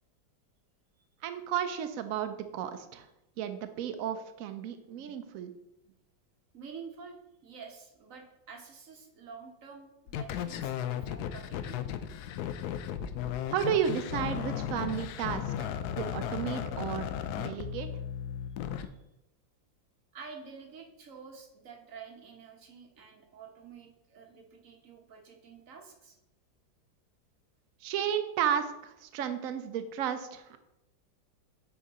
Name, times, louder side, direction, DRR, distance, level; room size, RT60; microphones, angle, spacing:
voice 1, 1.2-3.1 3.4-5.5 13.5-15.7 16.0-17.1 17.4-17.9 27.8-30.6, right 9 dB, 85° right, 8 dB, 0.7 m, -33 dB
voice 2, 6.5-11.8 18.8-18.9 20.1-26.2, right 5 dB, 50° right, 2 dB, 1.4 m, -49 dB
sound 1, 10.1-18.8, left 9 dB, 75° left, 0.9 m, -35 dB
8.6 x 4.7 x 4.1 m, 0.89 s
omnidirectional pair, 2.1 m